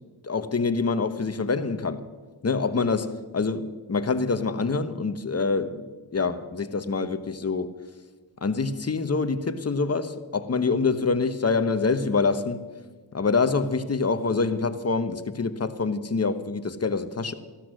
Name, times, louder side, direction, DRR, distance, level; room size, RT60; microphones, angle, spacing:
voice 1, 0.2-2.0 2.4-5.8 6.1-7.7 8.4-12.7 13.1-17.3, left 4 dB, 30° left, 1.1 m, -26 dB
14.5 x 12.5 x 6.3 m
cardioid pair, 80°, 46 cm